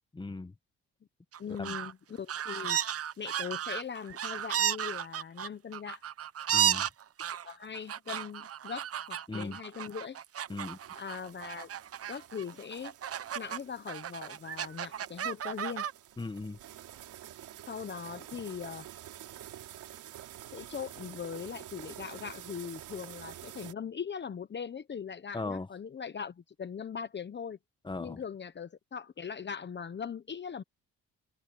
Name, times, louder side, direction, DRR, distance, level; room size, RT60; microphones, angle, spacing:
voice 1, 0.1-0.5 1.6-1.8 6.5-6.9 9.3-9.6 10.5-10.8 16.2-16.6 25.3-25.7 27.8-28.2, left 3 dB, 15° left, 1.4 m, -38 dB
sound 1, 1.3-1.9 2.3-13.6 13.9-15.9, right 10 dB, 50° right, 1.0 m, -34 dB
voice 2, 1.4-2.8 3.2-6.0 7.4-10.2 10.9-11.7 12.1-12.9 13.3-15.9 17.7-18.9 20.5-27.6 28.0-30.6, left 7 dB, 35° left, 1.1 m, -40 dB
sound 2, 10.5-23.7, right 12 dB, 80° right, 4.3 m, -49 dB
cardioid pair, 90°, 30 cm